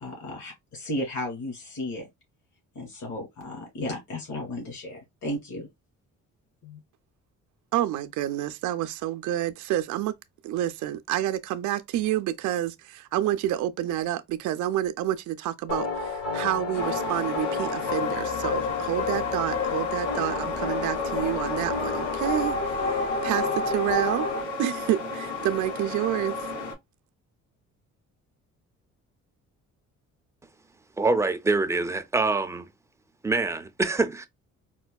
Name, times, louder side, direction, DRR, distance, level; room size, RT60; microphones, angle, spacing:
voice 1, 0.0-2.1 2.8-5.7 6.6-6.8, left 1 dB, 70° left, 2.2 m, -34 dB
voice 2, 7.7-10.1 10.4-24.3 24.6-26.3, right 13 dB, 75° right, 0.4 m, -29 dB
sound 1, 15.7-24.4, left 4 dB, 50° left, 1.1 m, -29 dB
sound 2, 16.7-26.7, left 3 dB, 90° left, 2.2 m, -34 dB
voice 3, 31.0-32.7 33.2-34.3, right 3 dB, 10° right, 0.4 m, -25 dB
4.3 x 2.2 x 2.2 m
cardioid pair, 90°, 30 cm